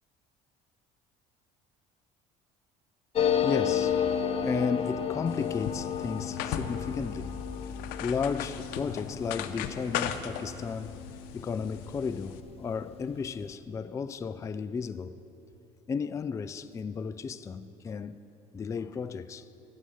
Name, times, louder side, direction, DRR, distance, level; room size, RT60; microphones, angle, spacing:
sound 1, 3.1-12.3 12.6-12.7 12.9-13.5, left 8 dB, 40° left, 0.8 m, -32 dB
voice 1, 3.4-15.2 15.9-18.2 18.5-19.5, left 5 dB, 20° left, 0.3 m, -34 dB
sound 2, 5.3-12.4, left 9 dB, 80° left, 0.7 m, -38 dB
13.0 x 7.6 x 8.0 m
cardioid pair, 110°, 15 cm